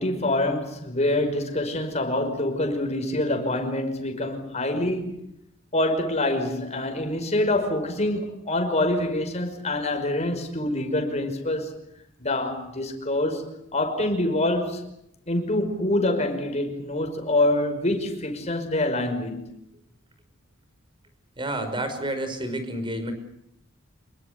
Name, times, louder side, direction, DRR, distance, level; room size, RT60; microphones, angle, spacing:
voice 1, 0.0-5.1 5.7-11.7 12.2-14.8 15.3-19.5, left 1 dB, 35° left, 5.5 m, -26 dB
voice 2, 21.4-23.1, right 1 dB, 25° right, 5.5 m, -29 dB
27.0 x 22.5 x 8.2 m
head